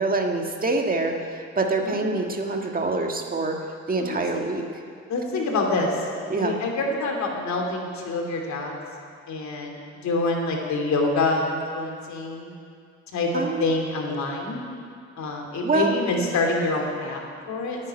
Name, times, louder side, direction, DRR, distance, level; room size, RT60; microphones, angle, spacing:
voice 1, 0.0-3.6 3.9-4.6 6.3-6.5 13.3-13.6 15.6-15.9, right 3 dB, 30° right, 2 dB, 1.6 m, -25 dB
voice 2, 4.0-4.4 5.1-6.1 6.4-8.8 9.3-12.5 13.1-14.6 15.2-17.9, left 2 dB, 65° left, 1 dB, 2.9 m, -26 dB
10.5 x 9.5 x 9.9 m, 2.3 s
cardioid pair, 90°, 30 cm